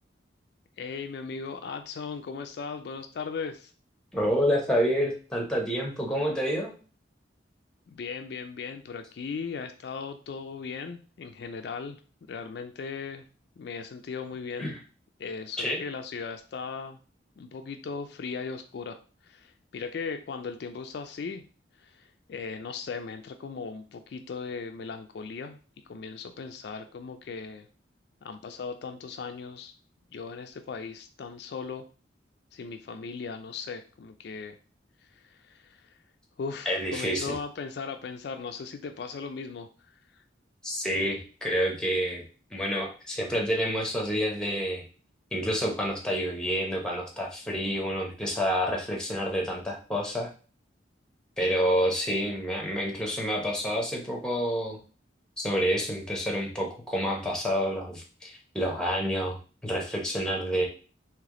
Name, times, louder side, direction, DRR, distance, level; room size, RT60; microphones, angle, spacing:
voice 1, 0.8-3.7 7.9-12.0 12.3-13.3 13.6-14.7 15.2-17.0 17.4-19.0 19.2-21.4 21.8-25.6 25.9-27.7 28.2-29.7 30.1-31.9 32.5-34.6 35.1-35.9 36.4-40.2, left 5 dB, 55° left, 7 dB, 0.3 m, -38 dB
voice 2, 4.1-6.7 14.6-14.8 15.6-15.8 36.7-37.4 40.6-42.2 42.5-44.8 45.3-50.3 51.4-54.8 55.4-59.4 59.6-60.7, equal, 5° left, 0 dB, 0.8 m, -28 dB
3.3 x 3.0 x 3.7 m, 0.38 s
head